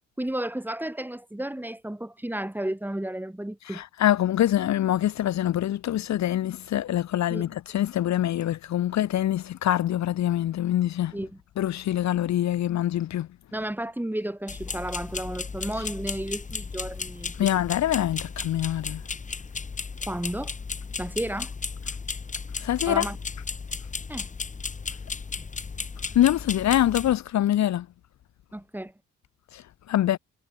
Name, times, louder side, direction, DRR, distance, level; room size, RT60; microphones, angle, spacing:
voice 1, 0.2-3.8 7.3-7.6 11.1-11.4 13.5-17.5 20.1-20.5 21.0-21.5 22.9-23.2 24.1-24.3 28.5-28.9, right 1 dB, 5° right, 5.3 m, -32 dB
voice 2, 3.7-11.1 11.6-13.3 17.4-19.0 22.6-23.1 26.1-27.9 29.5-29.6 29.9-30.2, left 12 dB, 65° left, 1.1 m, -24 dB
sound 1, 14.5-27.2, left 5 dB, 25° left, 1.1 m, -35 dB
cardioid pair, 90°, 30 cm